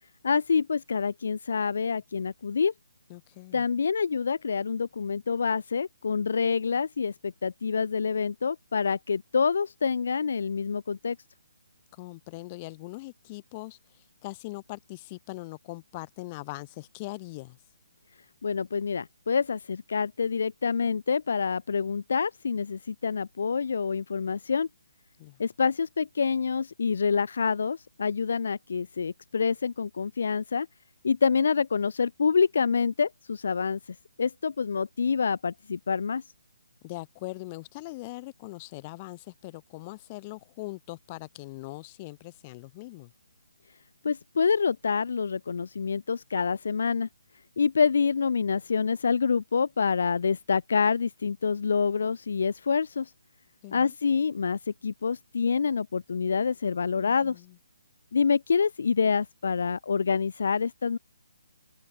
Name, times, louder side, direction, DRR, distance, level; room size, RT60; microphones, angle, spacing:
voice 1, 0.2-2.7 3.5-11.2 18.4-24.7 25.4-30.7 31.0-33.8 34.2-36.2 44.0-47.1 47.6-53.1 53.7-57.4 58.1-61.0, left 5 dB, 60° left, 0.7 m, -27 dB
voice 2, 3.1-3.6 11.9-17.6 25.2-25.4 36.8-43.1 53.6-53.9 57.0-57.6, left 22 dB, 25° left, 1.3 m, -41 dB
open air
hypercardioid pair, 160°, 0 cm